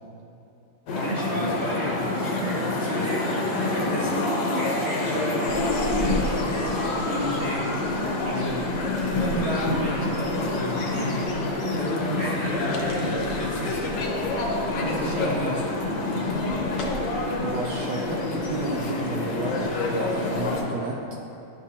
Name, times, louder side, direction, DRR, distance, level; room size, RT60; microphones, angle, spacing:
sound 1, 0.9-20.6, left 2 dB, 85° left, 1.5 m, -27 dB
voice 1, 0.9-11.2 11.7-14.1 14.7-15.7, equal, 50° right, -6 dB, 0.9 m, -32 dB
sound 2, 5.5-20.6, equal, 70° left, 1.2 m, -40 dB
voice 2, 17.3-21.1, right 3 dB, 70° right, -1 dB, 1.0 m, -32 dB
11.0 x 3.7 x 2.8 m, 2.9 s
omnidirectional pair, 1.8 m